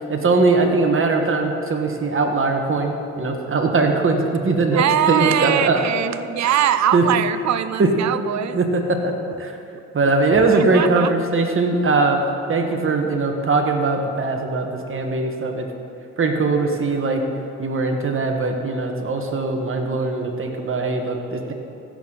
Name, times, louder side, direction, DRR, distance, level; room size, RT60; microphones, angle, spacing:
voice 1, 0.1-5.8 6.9-7.0 7.8-7.9 8.5-9.5 9.9-12.2 12.5-15.7 16.2-17.2 17.6-21.5, right 3 dB, 40° right, 3 dB, 1.6 m, -20 dB
voice 2, 4.7-8.6 9.7-9.8 10.5-11.1, right 10 dB, 60° right, 14 dB, 0.6 m, -22 dB
16.0 x 6.5 x 4.1 m, 2.9 s
supercardioid pair, 65°, 31 cm